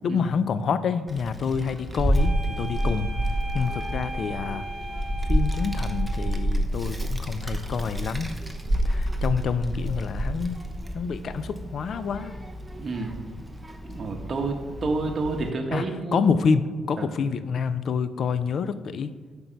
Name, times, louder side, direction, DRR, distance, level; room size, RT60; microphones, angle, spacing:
voice 1, 0.0-3.1 3.5-4.6 5.3-8.3 8.8-10.6 10.9-12.3 15.7-16.6 16.9-19.2, left 6 dB, 55° left, 13 dB, 0.4 m, -27 dB
Child speech kid speaking, 1.1-15.5, equal, 5° right, 0.8 m, -29 dB
sound 1, 2.1-6.3, right 1 dB, 30° left, 1.7 m, -38 dB
voice 2, 12.8-13.1 13.9-16.3 17.0-17.1, right 3 dB, 40° right, 2 dB, 1.0 m, -29 dB
8.1 x 5.3 x 4.5 m, 1.4 s
cardioid pair, 90°, 0 cm